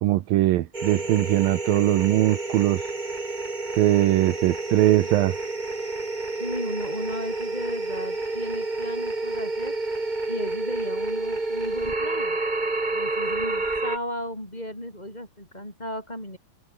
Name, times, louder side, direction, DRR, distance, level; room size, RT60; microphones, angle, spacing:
voice 1, 0.0-2.8 3.8-5.3, right 15 dB, 80° right, 2.7 m, -21 dB
sound 1, 0.7-14.0, right 3 dB, 15° right, 1.6 m, -29 dB
voice 2, 6.4-9.7 10.3-12.4 12.9-16.4, left 1 dB, 10° left, 6.8 m, -35 dB
open air
omnidirectional pair, 4.1 m